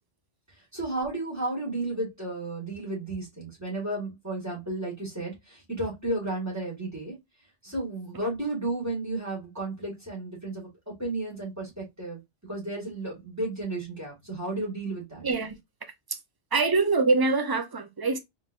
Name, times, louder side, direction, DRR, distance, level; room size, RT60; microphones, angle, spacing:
voice 1, 0.5-7.2 7.6-12.2 12.5-15.3, right 2 dB, 15° right, 1.9 m, -33 dB
voice 2, 15.2-15.6 16.1-16.2 16.5-18.2, right 3 dB, 40° right, 0.3 m, -24 dB
3.7 x 3.1 x 2.4 m
omnidirectional pair, 1.2 m